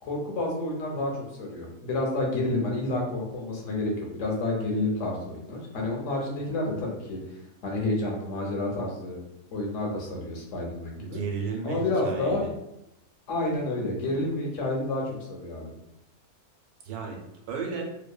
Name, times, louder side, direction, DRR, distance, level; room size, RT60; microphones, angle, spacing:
voice 1, 0.0-7.2 7.6-9.2 9.5-11.2 11.6-12.4 13.3-15.0 15.3-15.7, left 2 dB, 60° left, -1 dB, 1.0 m, -29 dB
voice 2, 11.0-12.5 16.8-17.2 17.5-17.8, right 5 dB, 80° right, 2 dB, 1.1 m, -34 dB
2.8 x 2.1 x 2.2 m, 0.83 s
omnidirectional pair, 1.6 m